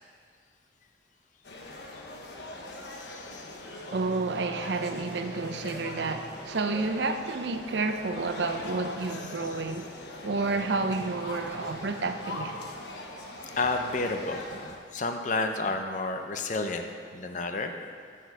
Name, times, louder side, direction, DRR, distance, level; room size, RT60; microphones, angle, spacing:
sound 1, 1.4-14.8, left 2 dB, 60° left, 0.9 m, -42 dB
voice 1, 2.9-3.6 13.6-17.7, left 3 dB, 40° left, 5 dB, 0.6 m, -31 dB
voice 2, 3.9-9.9 10.2-12.6, right 3 dB, 65° right, 8 dB, 0.5 m, -30 dB
7.6 x 5.1 x 7.0 m, 2.1 s
head